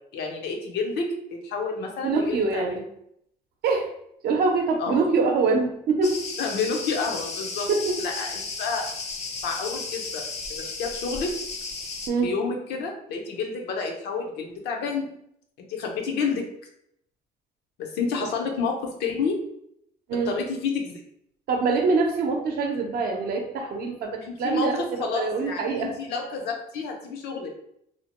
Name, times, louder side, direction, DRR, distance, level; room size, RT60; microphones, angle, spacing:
voice 1, 0.1-2.6 4.8-5.0 6.4-7.7 8.0-8.9 9.4-11.3 12.2-15.1 15.7-16.4 17.8-19.4 20.3-21.0 24.2-27.5, left 4 dB, 80° left, 2 dB, 0.6 m, -29 dB
voice 2, 2.0-2.8 3.6-3.9 4.2-6.2 7.7-8.0 12.1-12.3 20.1-20.3 21.5-25.9, right 4 dB, 65° right, 3 dB, 0.6 m, -24 dB
Cricket, 6.0-12.1, left 4 dB, 40° left, 0.5 m, -34 dB
2.7 x 2.1 x 2.9 m, 0.73 s
cardioid pair, 110°, 17 cm